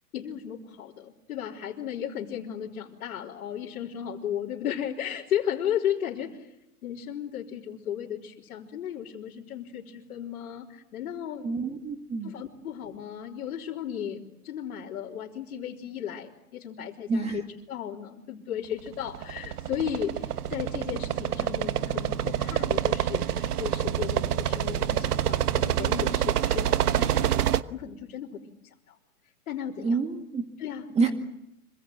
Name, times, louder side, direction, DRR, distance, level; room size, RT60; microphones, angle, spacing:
voice 1, 0.1-6.5 6.8-11.5 12.2-17.4 17.7-27.4 27.7-29.0 29.5-30.0 30.6-31.1, left 9 dB, 65° left, -4 dB, 3.8 m, -35 dB
voice 2, 11.4-12.3 17.1-17.4 29.8-30.4 30.9-31.1, right 4 dB, 15° right, 5 dB, 2.1 m, -27 dB
sound 1, 18.9-27.6, right 10 dB, 75° right, 1.2 m, -27 dB
26.0 x 24.5 x 7.6 m, 0.82 s
hypercardioid pair, 135°, 46 cm